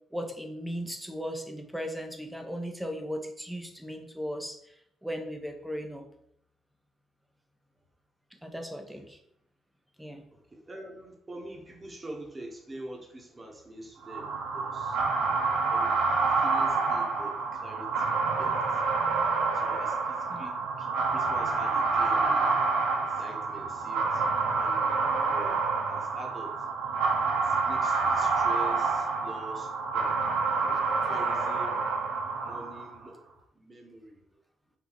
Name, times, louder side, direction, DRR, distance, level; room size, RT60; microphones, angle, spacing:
voice 1, 0.1-4.6 5.0-6.0 8.4-9.2 10.0-10.2 15.7-15.8 20.3-20.4, equal, 5° right, 4 dB, 0.8 m, -37 dB
voice 2, 8.7-9.1 10.3-15.0 15.7-15.9 16.2-18.8 19.5-22.6 23.0-25.6 25.9-26.5 27.4-30.1 30.6-30.8 31.1-31.8 32.4-33.2 33.5-34.2, right 1 dB, 25° right, 1 dB, 1.2 m, -45 dB
sound 1, 14.1-33.0, right 4 dB, 90° right, 0.7 m, -28 dB
4.7 x 2.6 x 4.0 m, 0.71 s
cardioid pair, 90°, 0 cm